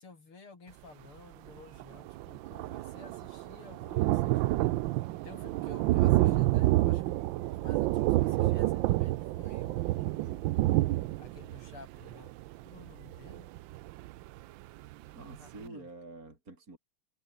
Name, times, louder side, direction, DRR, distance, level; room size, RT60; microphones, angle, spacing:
voice 1, 0.0-4.5 5.2-10.5 11.2-12.3 12.7-13.5 15.4-15.9, left 4 dB, 85° left, 5.5 m, -53 dB
Thunder, 1.5-1.6 1.8-14.4 14.9-15.0 15.3-15.4, right 17 dB, 75° right, 1.2 m, -29 dB
voice 2, 6.2-6.5 15.1-16.8, right 2 dB, 40° right, 5.5 m, -46 dB
omnidirectional pair, 2.3 m